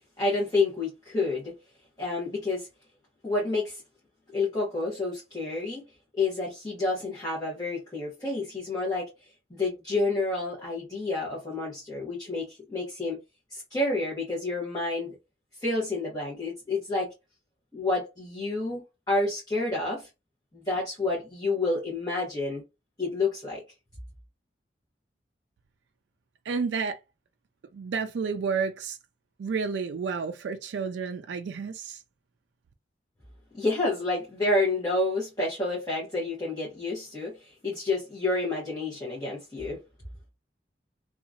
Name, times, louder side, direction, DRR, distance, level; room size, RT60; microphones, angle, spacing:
voice 1, 0.2-1.6 2.0-2.7 3.2-3.8 4.3-5.8 6.1-9.1 9.5-13.2 13.5-15.2 15.6-17.1 17.7-20.1 20.5-22.6 23.0-23.6 33.5-39.8, left 2 dB, 20° left, 1.1 m, -29 dB
voice 2, 26.5-27.0 27.7-29.0 29.4-32.0, right 5 dB, 80° right, 0.3 m, -30 dB
2.8 x 2.4 x 2.4 m
head